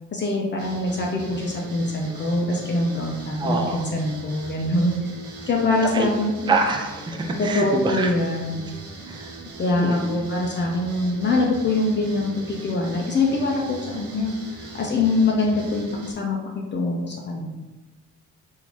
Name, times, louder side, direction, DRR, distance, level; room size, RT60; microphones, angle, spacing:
voice 1, 0.1-5.0 5.5-6.6 7.4-8.6 9.6-14.3 14.6-16.4 16.7-17.5, left 2 dB, 35° left, -1 dB, 0.6 m, -24 dB
sound 1, 0.6-16.1, right 2 dB, 50° right, 0.8 m, -40 dB
voice 2, 3.4-3.8 5.9-6.1 6.5-8.1 9.1-9.3 9.8-10.2, right 3 dB, 15° right, 3 dB, 0.4 m, -25 dB
3.6 x 2.6 x 3.0 m, 1.1 s
cardioid pair, 90°, 30 cm